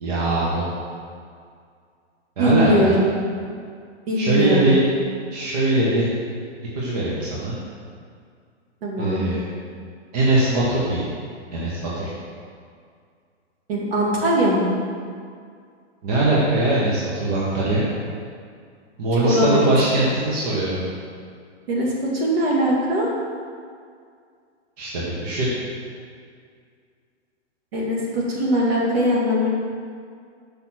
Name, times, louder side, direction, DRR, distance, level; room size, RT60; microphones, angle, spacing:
voice 1, 0.0-0.7 2.4-2.9 4.2-4.8 5.3-6.1 6.7-7.6 9.0-9.4 10.1-11.0 11.5-12.1 16.0-17.8 19.0-20.8 24.8-25.5, right 2 dB, 35° right, -7 dB, 1.2 m, -21 dB
voice 2, 2.4-3.1 4.1-4.8 8.8-9.2 13.7-14.7 19.1-19.7 21.7-23.1 27.7-29.5, equal, 55° right, -3 dB, 2.1 m, -21 dB
6.4 x 5.0 x 5.9 m, 2.2 s
hypercardioid pair, 170°, 35 cm